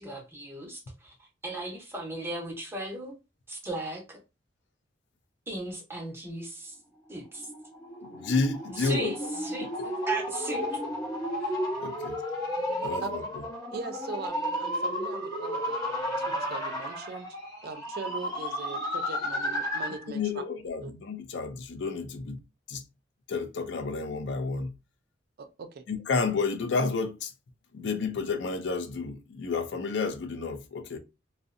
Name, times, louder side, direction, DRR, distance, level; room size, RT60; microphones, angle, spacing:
voice 1, 0.0-3.1 3.5-4.2 5.5-6.8 7.1-7.5 8.7-10.6, right 2 dB, 15° right, 0.7 m, -36 dB
sound 1, 7.3-20.1, equal, 20° left, 0.9 m, -33 dB
voice 2, 8.1-9.1 11.8-12.2 12.8-13.2 20.1-22.4 22.7-22.8 23.3-24.7 25.9-27.3 27.7-31.0, left 4 dB, 70° left, 0.4 m, -30 dB
voice 3, 13.7-16.0 16.3-17.3 17.6-20.4 20.8-20.9 25.4-25.8, right 4 dB, 55° right, 0.4 m, -40 dB
2.5 x 2.0 x 2.4 m
head